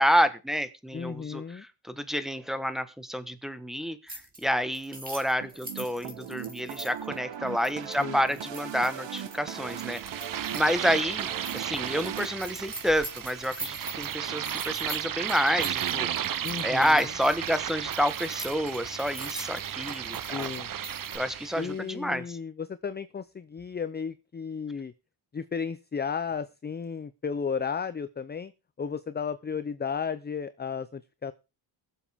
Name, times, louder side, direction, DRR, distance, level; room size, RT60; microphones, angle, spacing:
voice 1, 0.0-1.4 1.8-10.2 10.5-20.5 21.1-22.4, equal, ahead, 9 dB, 1.3 m, -29 dB
voice 2, 0.9-1.6 8.0-8.3 16.4-17.1 20.3-20.7 21.6-24.9 25.3-28.5 28.8-31.3, left 6 dB, 20° left, 13 dB, 0.5 m, -34 dB
sound 1, 4.1-4.4 4.7-10.7 11.0-11.1 11.4-21.2, right 1 dB, 15° right, 3.1 m, -43 dB
sound 2, 5.4-12.3, right 10 dB, 60° right, 1.2 m, -39 dB
sound 3, 9.5-21.8, right 9 dB, 45° right, 0.7 m, -34 dB
21.5 x 7.3 x 3.5 m, 0.29 s
cardioid pair, 100°, 49 cm